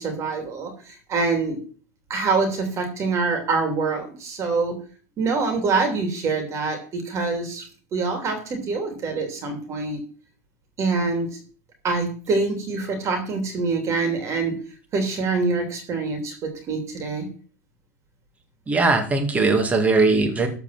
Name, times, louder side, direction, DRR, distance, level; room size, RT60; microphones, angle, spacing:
voice 1, 0.0-1.6 2.1-4.8 5.2-7.7 7.9-10.0 10.8-11.3 11.8-14.6 14.9-17.3, right 4 dB, 35° right, 5 dB, 3.0 m, -25 dB
voice 2, 18.7-20.5, right 3 dB, 15° right, 6 dB, 2.4 m, -19 dB
13.5 x 4.6 x 7.5 m, 0.41 s
supercardioid pair, 140°, 9 cm